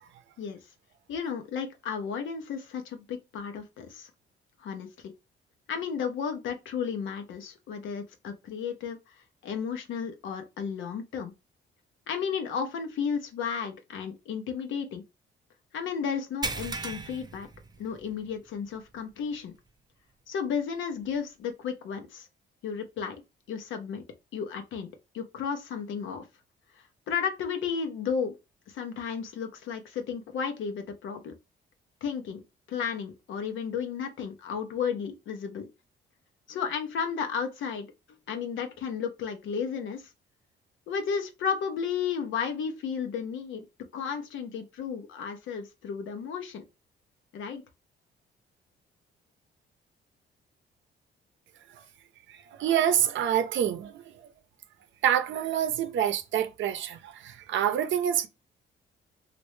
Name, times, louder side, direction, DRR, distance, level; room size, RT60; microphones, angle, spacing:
voice 1, 1.1-4.1 4.6-5.1 5.7-9.0 9.4-11.3 12.1-15.0 15.7-17.5 17.8-19.5 20.3-22.3 22.6-23.2 23.5-24.0 24.3-24.9 25.1-26.2 27.1-28.3 28.7-31.3 32.0-32.4 32.7-35.7 36.5-37.9 38.3-40.1 40.9-43.7 43.9-46.6 47.3-47.6, left 6 dB, 80° left, 0.8 m, -33 dB
sound 1, 16.4-18.3 18.7-18.9 19.3-19.4 21.1-21.2, right 3 dB, 20° right, 0.4 m, -36 dB
voice 2, 52.3-54.3 55.0-58.3, right 10 dB, 70° right, 0.6 m, -27 dB
3.1 x 2.5 x 3.1 m
cardioid pair, 90°, 20 cm